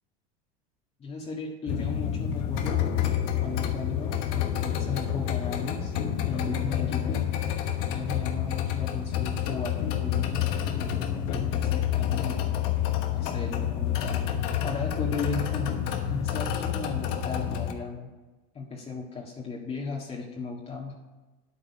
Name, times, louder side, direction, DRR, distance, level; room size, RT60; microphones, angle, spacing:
voice 1, 1.0-5.9 6.3-7.3 7.9-12.4 13.1-14.2 14.6-15.8 16.1-18.1 18.5-21.0, left 4 dB, 30° left, -2 dB, 1.8 m, -36 dB
sound 1, 1.7-17.7, left 10 dB, 70° left, 1.1 m, -28 dB
9.1 x 8.7 x 5.6 m, 1.2 s
hypercardioid pair, 90°, 19 cm